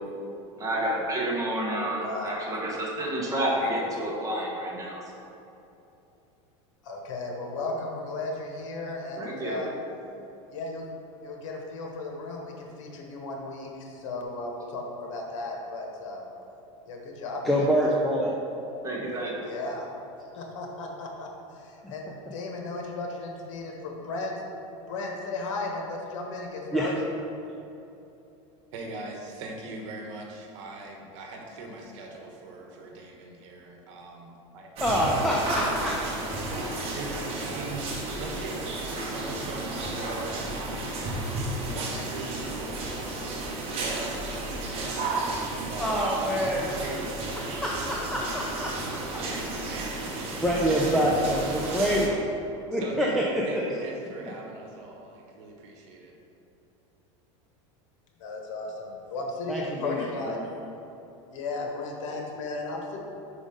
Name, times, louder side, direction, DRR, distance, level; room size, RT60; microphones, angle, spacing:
voice 1, 0.6-5.0 9.2-9.6 18.8-19.3, right 1 dB, 20° right, -4 dB, 1.4 m, -29 dB
voice 2, 2.0-2.4 3.6-3.7 6.8-9.7 10.5-10.9 11.2-16.3 16.9-17.7 19.5-19.9 20.3-21.3 21.5-24.3 24.9-27.0 58.2-60.4 61.3-63.0, left 3 dB, 75° left, 1 dB, 1.4 m, -35 dB
voice 3, 17.4-18.3 21.8-21.9 26.7-26.9 34.8-36.0 45.8-46.8 47.4-49.2 50.0-50.1 50.4-52.2 52.7-53.6 59.5-60.4, equal, ahead, -4 dB, 0.5 m, -26 dB
voice 4, 28.7-36.7 36.9-37.9 38.1-40.9 41.5-42.9 43.3-44.2 44.8-45.2 45.7-46.1 46.6-47.6 49.2-50.0 50.3-51.3 52.0-52.2 52.7-56.1, right 2 dB, 70° right, 1 dB, 1.2 m, -41 dB
sound 1, 34.8-52.1, right 2 dB, 40° right, 1.2 m, -33 dB
5.2 x 5.1 x 5.1 m, 2.9 s
supercardioid pair, 145°, 16 cm